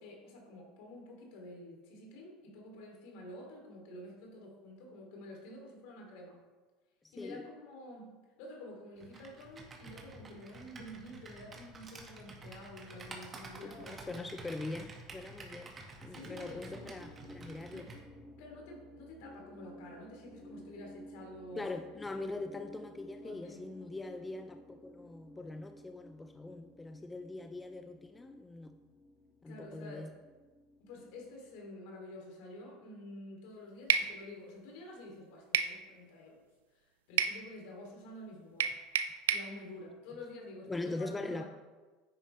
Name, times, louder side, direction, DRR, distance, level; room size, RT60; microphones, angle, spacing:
voice 1, 0.0-6.4 7.1-8.1 8.4-14.2 16.0-16.9 17.7-17.9 18.4-21.8 23.2-23.6 29.4-30.1 30.8-36.4 36.7-36.8 37.1-38.7 39.3-41.5, left 1 dB, 65° left, 0 dB, 3.2 m, -49 dB
voice 2, 7.0-7.4 13.6-15.7 16.0-17.9 21.6-28.7 29.4-30.1 40.7-41.4, left 2 dB, 15° left, 7 dB, 0.6 m, -42 dB
Computer keyboard, 9.0-18.0, right 3 dB, 30° right, 2.0 m, -50 dB
sound 1, 16.2-31.6, equal, ahead, 1.9 m, -55 dB
sound 2, 33.9-34.1 35.5-35.8 37.2-37.4 38.6-39.5, right 8 dB, 80° right, 0.5 m, -29 dB
10.0 x 9.0 x 3.4 m, 1.3 s
hypercardioid pair, 85°, 0 cm